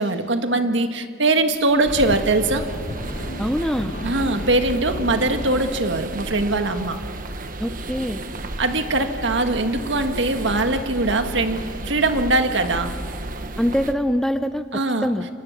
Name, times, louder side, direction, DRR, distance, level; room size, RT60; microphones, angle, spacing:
voice 1, 0.0-2.7 4.0-7.0 8.6-11.6 11.9-12.9 14.7-15.1, right 2 dB, 65° right, 7 dB, 1.8 m, -21 dB
sound 1, 1.5-5.8, left 1 dB, 45° left, 1.3 m, -35 dB
sound 2, 1.8-13.9, right 2 dB, 45° right, 1.3 m, -33 dB
voice 2, 3.4-3.9 7.6-8.2 13.6-15.3, equal, ahead, 10 dB, 0.6 m, -24 dB
30.0 x 25.0 x 7.3 m, 2.2 s
head